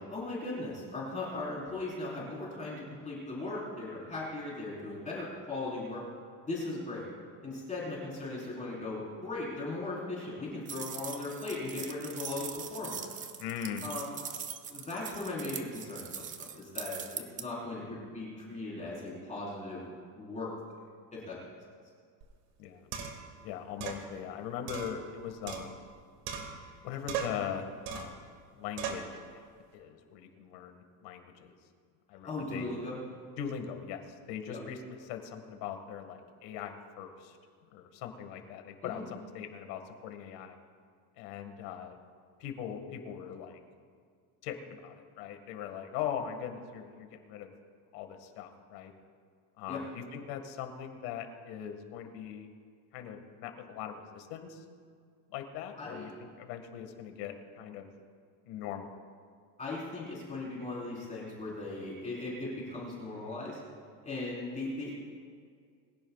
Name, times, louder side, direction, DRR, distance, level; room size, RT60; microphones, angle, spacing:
voice 1, 0.0-6.0 6.5-7.1 7.4-13.0 13.8-14.2 14.7-19.8 20.1-20.5 21.1-21.4 32.2-33.0 34.5-34.6 38.8-39.0 49.7-49.8 55.8-56.1 59.6-63.6 64.0-64.9, left 2 dB, 15° left, -6 dB, 4.4 m, -38 dB
sound 1, 10.7-17.4, right 7 dB, 20° right, 0.3 m, -41 dB
voice 2, 13.4-13.9 22.6-22.9 23.4-25.8 26.8-29.4 29.7-31.5 32.1-32.8 33.4-37.4 37.7-40.5 41.2-42.0 42.4-43.6 44.4-44.6 44.8-47.5 47.9-48.9 49.6-52.5 52.9-54.7 55.3-56.1 56.4-57.9 58.5-58.9, left 8 dB, 85° left, 5 dB, 2.0 m, -40 dB
sound 2, 22.2-22.3 22.9-23.3 23.8-24.0 24.7-25.9 26.3-26.8 27.1-27.5 27.9-28.2 28.8-29.1, right 7 dB, 85° right, 2.3 m, -38 dB
22.5 x 16.0 x 2.4 m, 2.1 s
cardioid pair, 165°, 45 cm